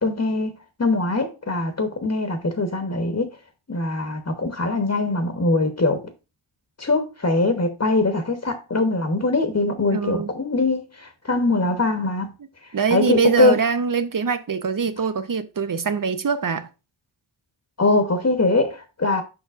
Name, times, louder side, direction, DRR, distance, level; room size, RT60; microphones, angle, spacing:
voice 1, 0.0-3.3 3.7-6.1 6.8-12.3 12.9-13.6 17.8-19.2, left 2 dB, 30° left, 1.0 m, -22 dB
voice 2, 9.9-10.3 12.7-16.7, right 6 dB, 40° right, 0.7 m, -23 dB
6.9 x 5.5 x 2.5 m
cardioid pair, 55°, 50 cm